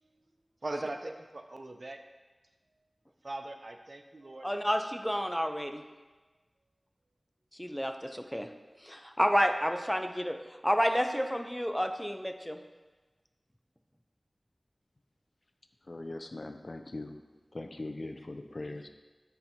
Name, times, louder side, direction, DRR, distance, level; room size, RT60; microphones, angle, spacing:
voice 1, 0.6-2.0 3.2-4.5, right 2 dB, 60° right, 6 dB, 0.4 m, -40 dB
voice 2, 4.4-5.8 7.6-8.5 8.8-12.6, equal, 5° left, 6 dB, 0.5 m, -30 dB
voice 3, 15.9-17.2 17.5-18.9, left 2 dB, 60° left, 6 dB, 0.4 m, -40 dB
9.2 x 4.4 x 2.7 m, 1.2 s
wide cardioid pair, 45°, 0 cm